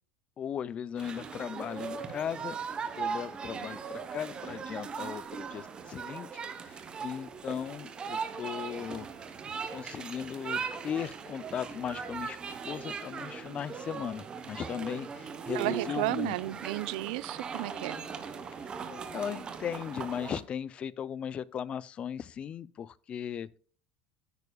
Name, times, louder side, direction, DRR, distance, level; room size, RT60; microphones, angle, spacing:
voice 1, 0.4-6.3 6.6-9.3 9.7-12.4 12.6-16.4 18.6-23.6, left 8 dB, 25° left, 0.4 m, -37 dB
sound 1, 1.0-20.4, right 6 dB, 20° right, 0.9 m, -39 dB
voice 2, 15.5-18.0, right 19 dB, 85° right, 0.4 m, -33 dB
9.7 x 9.3 x 2.3 m
cardioid pair, 165°, 4 cm